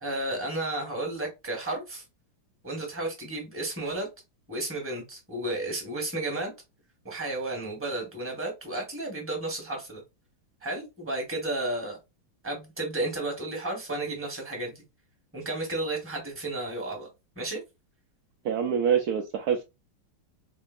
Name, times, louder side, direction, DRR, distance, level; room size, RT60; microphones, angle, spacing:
voice 1, 0.0-2.0 2.6-4.1 4.5-6.5 7.0-10.0 10.6-12.0 12.4-14.8 15.3-17.1 17.3-17.6, right 2 dB, 5° right, 1.3 m, -32 dB
voice 2, 18.4-19.6, right 7 dB, 80° right, 0.8 m, -25 dB
4.3 x 2.7 x 2.5 m
omnidirectional pair, 2.2 m